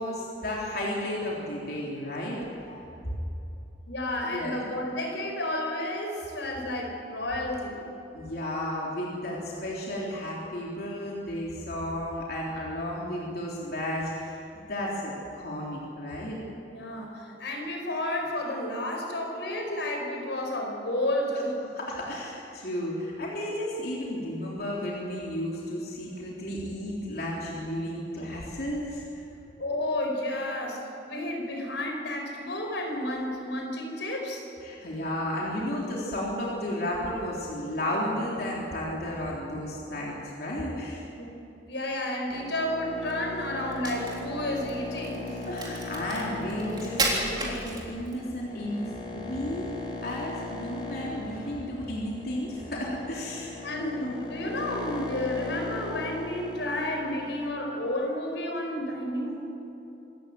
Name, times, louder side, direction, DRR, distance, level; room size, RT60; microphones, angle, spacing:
voice 1, 0.0-2.9 4.2-4.6 8.1-16.4 17.1-17.2 21.7-29.0 34.6-41.0 45.5-49.7 50.0-54.2, left 1 dB, 60° left, -4 dB, 3.6 m, -33 dB
voice 2, 3.9-7.8 16.7-21.6 29.6-34.4 41.2-41.3 41.7-45.4 53.6-59.4, left 1 dB, 85° left, 2 dB, 4.8 m, -31 dB
sound 1, 42.3-57.5, left 3 dB, 30° left, 3.3 m, -39 dB
Crack, 43.6-48.3, right 2 dB, 25° right, 3.7 m, -33 dB
26.0 x 14.0 x 7.9 m, 2.9 s
head